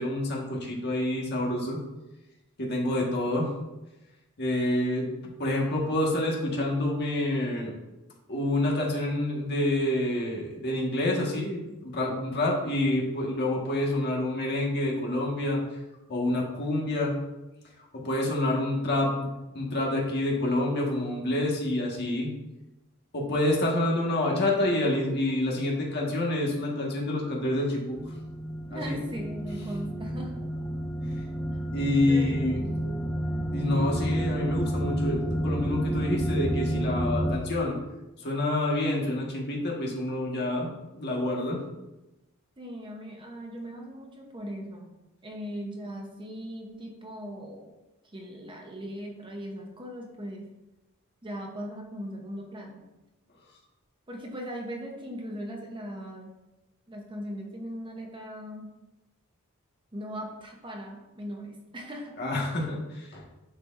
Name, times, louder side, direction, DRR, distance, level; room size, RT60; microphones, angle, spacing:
voice 1, 0.0-1.8 2.6-3.5 4.4-5.1 5.4-7.7 8.3-15.6 16.1-17.2 17.9-22.3 23.1-28.1 28.7-29.0 31.7-32.6 33.5-37.8 38.2-41.6 62.2-63.2, left 1 dB, 50° left, -2 dB, 1.6 m, -28 dB
sound 1, 28.0-37.4, equal, ahead, 0.4 m, -30 dB
voice 2, 28.7-30.4 31.5-31.6 32.1-33.1 42.6-44.9 45.2-47.7 48.0-50.5 51.2-52.8 54.1-56.4 56.9-58.8 59.9-62.2, equal, 20° right, 1 dB, 0.8 m, -39 dB
10.5 x 4.5 x 2.6 m, 1.0 s
head